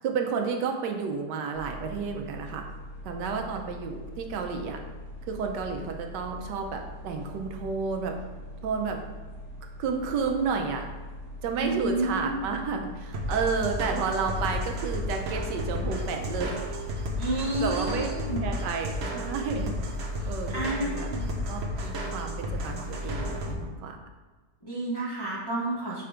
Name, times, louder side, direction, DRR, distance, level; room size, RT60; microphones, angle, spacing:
voice 1, 0.0-2.6 3.0-4.8 5.3-8.2 8.6-9.0 9.8-10.8 11.4-16.7 17.2-18.1 18.4-19.8 20.3-20.5 20.8-21.1 21.5-24.0, right 5 dB, 80° right, 3 dB, 1.3 m, -31 dB
sound 1, 1.5-18.4, left 1 dB, 15° right, 1.6 m, -42 dB
voice 2, 11.6-12.3 17.2-18.4 20.5-21.3 24.6-26.0, right 1 dB, 20° left, -6 dB, 0.7 m, -30 dB
sound 2, 13.1-23.5, left 1 dB, 50° right, 0.8 m, -32 dB
5.7 x 3.3 x 4.9 m, 1.3 s
omnidirectional pair, 1.9 m